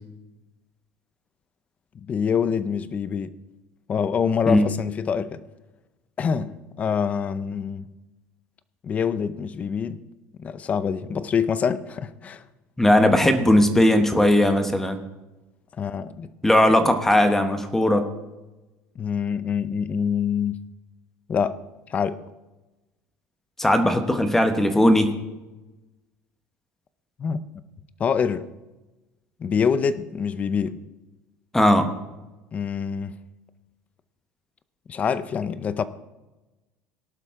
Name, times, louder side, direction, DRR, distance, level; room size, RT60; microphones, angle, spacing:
voice 1, 1.9-3.3 3.9-5.4 6.2-7.9 8.8-10.0 10.4-12.4 15.8-16.3 16.7-16.9 19.0-20.6 21.3-21.6 21.9-22.2 27.2-27.4 28.0-28.5 29.4-30.8 32.5-33.1 34.9-35.8, left 7 dB, 25° left, 0.6 m, -25 dB
voice 2, 12.8-15.0 16.4-18.1 23.6-25.2 31.5-31.9, left 1 dB, 5° left, 0.9 m, -18 dB
18.0 x 11.5 x 3.7 m
cardioid pair, 170°, 6 cm